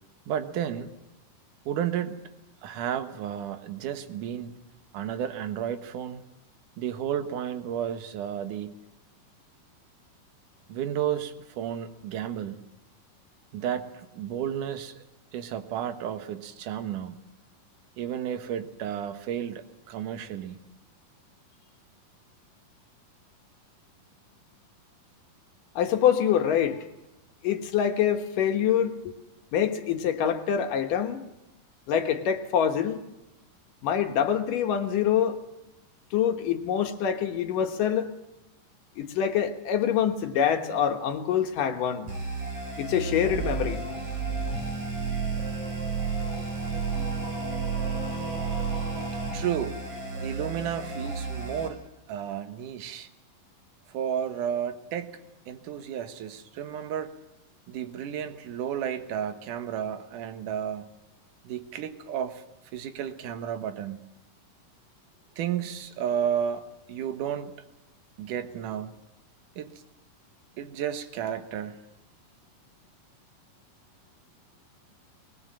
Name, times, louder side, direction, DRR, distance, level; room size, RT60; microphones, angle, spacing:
voice 1, 0.3-0.9 1.7-2.2 2.6-4.5 4.9-6.2 6.8-8.8 10.7-12.6 13.5-15.0 15.3-17.2 18.0-20.6 49.3-49.8 50.2-51.8 52.1-53.1 53.9-55.1 55.5-57.1 57.7-60.9 61.4-62.4 62.7-64.0 65.4-67.5 68.2-68.9 69.6-69.7 70.6-71.8, right 9 dB, 65° right, 2.7 m, -32 dB
voice 2, 25.8-26.9 27.4-29.1 29.5-31.2 31.9-33.0 33.8-35.4 36.1-38.1 39.0-42.1 42.8-43.9, left 9 dB, 65° left, 2.8 m, -25 dB
sound 1, 42.1-51.7, right 4 dB, 50° right, 6.4 m, -31 dB
22.0 x 20.0 x 7.6 m
omnidirectional pair, 4.3 m